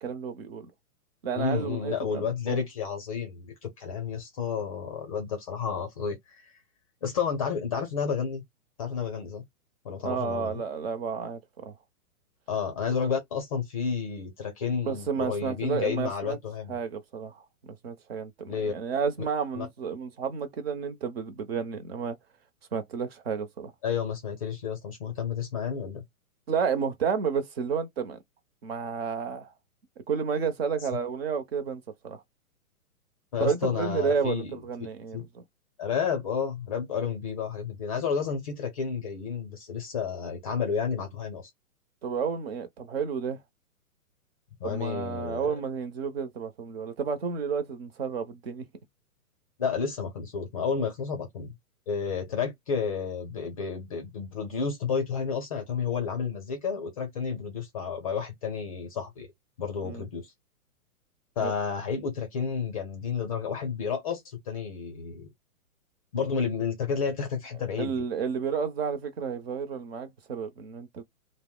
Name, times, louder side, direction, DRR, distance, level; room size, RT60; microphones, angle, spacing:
voice 1, 0.0-0.7 1.2-2.6 10.0-11.7 14.9-16.4 16.7-22.2 22.7-23.7 26.5-28.2 28.6-29.5 30.1-32.2 33.4-35.4 42.0-43.4 44.6-48.7 59.8-60.0 61.4-61.5 67.8-71.0, right 6 dB, 45° right, 0.7 m, -31 dB
voice 2, 1.3-6.2 7.0-8.4 8.8-9.4 9.8-10.6 12.5-16.8 18.5-18.7 19.5-19.7 23.8-26.0 33.3-34.6 35.1-35.2 35.8-41.5 44.6-45.5 49.6-51.5 51.9-59.3 59.6-60.2 61.4-64.2 64.5-65.3 66.1-67.9, left 6 dB, 25° left, 0.6 m, -31 dB
2.6 x 2.1 x 3.7 m
hypercardioid pair, 160°, 44 cm